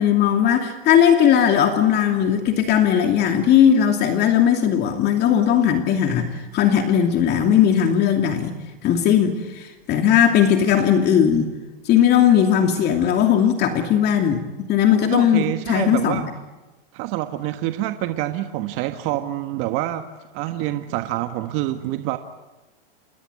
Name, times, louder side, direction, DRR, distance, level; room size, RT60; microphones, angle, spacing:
voice 1, 0.0-8.5 8.8-11.5 11.8-16.2, left 9 dB, 35° left, 4 dB, 2.7 m, -18 dB
voice 2, 15.0-16.2 16.9-20.1 20.3-22.2, right 14 dB, 45° right, 7 dB, 1.4 m, -26 dB
28.0 x 21.5 x 9.7 m, 1.1 s
hypercardioid pair, 130°, 30 cm